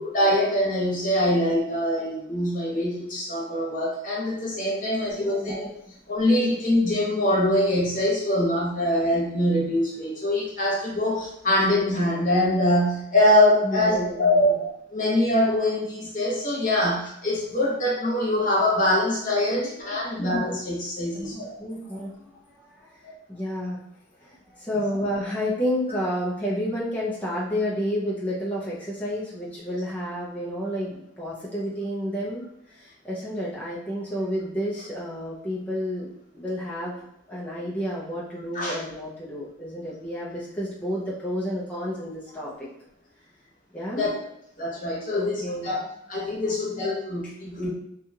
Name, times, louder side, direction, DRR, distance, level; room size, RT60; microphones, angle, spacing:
voice 1, 0.1-5.7 6.1-21.6 38.5-38.8 43.9-44.1 44.6-45.8 46.1-47.7, left 1 dB, 45° left, -5 dB, 1.0 m, -23 dB
voice 2, 4.9-5.6 13.6-14.6 19.5-20.3 21.1-23.8 24.2-36.1 36.3-42.7 43.7-44.1 45.1-45.8 47.2-47.3, equal, 10° left, -7 dB, 0.4 m, -31 dB
2.8 x 2.3 x 2.7 m, 0.77 s
head